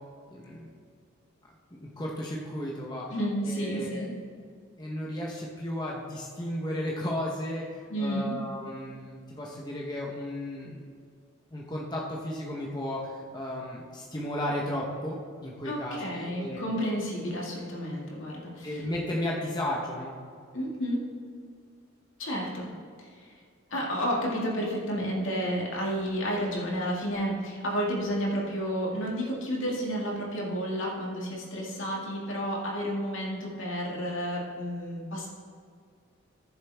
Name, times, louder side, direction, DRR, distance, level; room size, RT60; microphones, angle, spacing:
voice 1, 0.3-0.7 1.7-3.1 3.4-4.1 4.8-10.8 11.5-16.6 18.6-20.1, left 1 dB, 20° left, -3 dB, 1.1 m, -34 dB
voice 2, 3.1-4.1 7.9-8.4 15.6-18.8 20.5-21.1 22.2-22.7 23.0-23.4 23.7-35.3, equal, 70° left, -3 dB, 2.2 m, -31 dB
15.0 x 7.1 x 3.5 m, 2.1 s
head